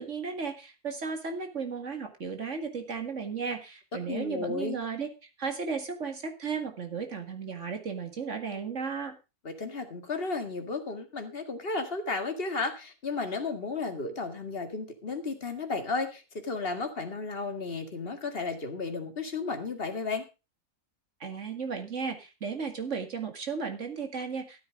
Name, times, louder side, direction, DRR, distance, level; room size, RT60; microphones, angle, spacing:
voice 1, 0.0-9.1 21.2-24.6, right 5 dB, 55° right, 6 dB, 2.2 m, -35 dB
voice 2, 4.1-4.8 9.4-20.2, left 3 dB, 40° left, 6 dB, 2.1 m, -33 dB
13.0 x 8.6 x 4.8 m, 0.29 s
omnidirectional pair, 1.6 m